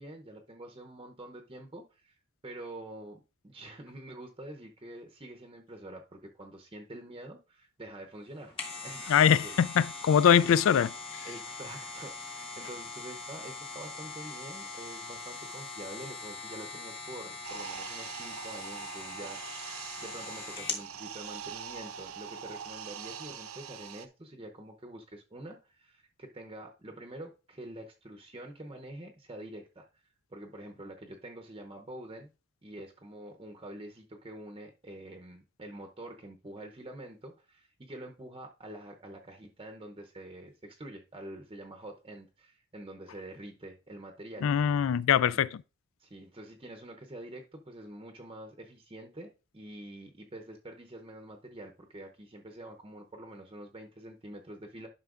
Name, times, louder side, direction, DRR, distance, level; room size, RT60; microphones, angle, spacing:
voice 1, 0.0-2.1 2.4-8.5 8.8-10.0 10.2-10.5 11.2-32.3 32.6-44.7 45.3-45.4 46.0-54.9, right 1 dB, 25° right, 0.7 m, -46 dB
sound 1, 8.3-20.9 21.3-21.4, left 3 dB, 25° left, 1.2 m, -42 dB
voice 2, 9.1-10.9 44.4-45.6, left 8 dB, 70° left, 0.3 m, -23 dB
sound 2, 17.4-24.1, right 7 dB, 85° right, 0.7 m, -43 dB
11.5 x 5.6 x 2.4 m
head